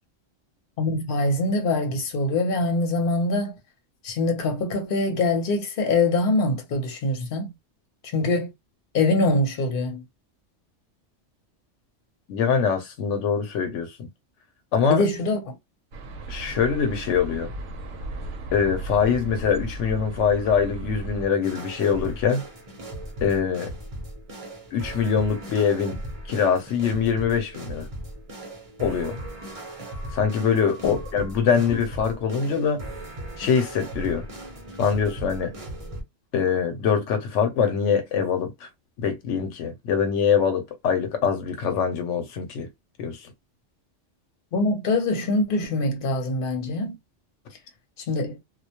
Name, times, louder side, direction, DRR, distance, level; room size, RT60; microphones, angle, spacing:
voice 1, 0.8-3.6 4.0-7.5 8.1-8.5 8.9-10.0 14.9-15.5 30.9-31.0 44.5-47.0 48.1-48.4, left 2 dB, 55° left, 0.9 m, -24 dB
voice 2, 12.3-14.1 14.7-15.0 16.3-17.5 18.5-22.4 23.2-23.7 24.7-26.0 26.3-27.9 28.8-29.2 30.1-32.8 33.4-34.3 34.8-35.5 36.3-38.7 39.0-42.7 43.0-43.3, left 6 dB, 90° left, 1.0 m, -23 dB
sound 1, 15.9-21.3, right 2 dB, 85° right, 0.9 m, -35 dB
sound 2, 21.4-36.0, right 1 dB, 35° right, 0.8 m, -38 dB
2.3 x 2.1 x 2.8 m
omnidirectional pair, 1.2 m